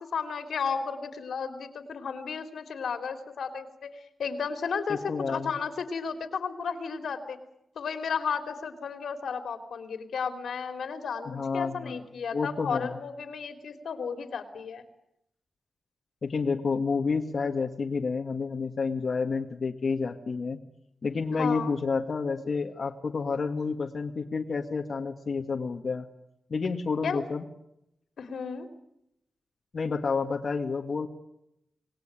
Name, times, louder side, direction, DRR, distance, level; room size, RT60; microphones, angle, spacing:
voice 1, 0.0-7.4 7.7-14.8 21.4-21.7 27.0-27.2 28.2-28.7, left 6 dB, 90° left, 8 dB, 3.3 m, -33 dB
voice 2, 4.9-5.5 11.3-12.0 12.3-13.0 16.2-20.6 21.0-26.1 26.5-27.4 29.7-31.1, left 4 dB, 50° left, 3 dB, 1.9 m, -29 dB
27.0 x 19.5 x 9.1 m, 0.82 s
wide cardioid pair, 135°, 0 cm